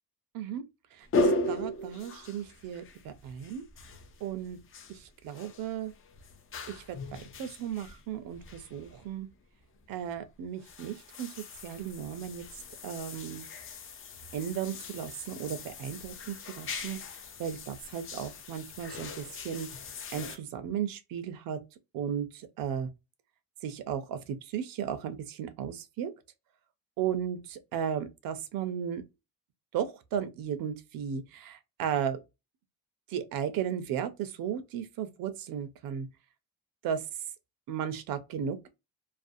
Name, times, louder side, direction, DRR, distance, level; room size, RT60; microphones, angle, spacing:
voice 1, 0.9-3.6 4.2-4.6 5.0-5.9 6.7-9.3 9.9-11.3 11.6-12.4 12.8-13.5 14.3-17.0 17.4-19.7 20.1-21.6 21.9-22.9 23.6-26.1 27.0-27.4 27.7-29.0 29.7-32.2 33.1-36.1 36.8-37.0 37.7-38.7, right 8 dB, 70° right, 0.6 m, -35 dB
sound 1, 1.1-9.1 9.8-10.2 10.6-20.4, left 2 dB, 35° left, 0.5 m, -38 dB
2.5 x 2.2 x 2.5 m
cardioid pair, 120°, 35 cm